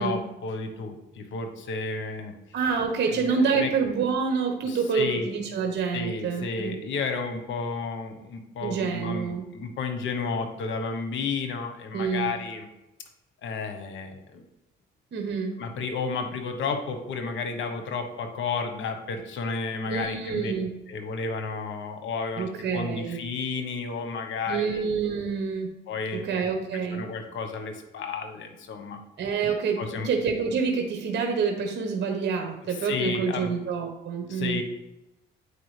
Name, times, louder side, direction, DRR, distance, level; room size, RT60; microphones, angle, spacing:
voice 1, 0.0-2.3 3.1-3.7 4.6-5.3 5.9-12.7 13.4-14.4 15.6-20.5 20.9-24.9 25.9-26.5 26.9-29.0 29.8-30.1 32.6-33.5 34.3-34.6, left 4 dB, 75° left, 6 dB, 1.1 m, -32 dB
voice 2, 2.5-6.7 8.6-9.5 11.9-12.3 15.1-15.5 19.9-20.7 22.4-23.2 24.5-25.7 26.2-27.0 29.2-34.6, right 5 dB, 60° right, 3 dB, 1.1 m, -27 dB
8.6 x 4.7 x 3.3 m, 0.93 s
cardioid pair, 90°, 20 cm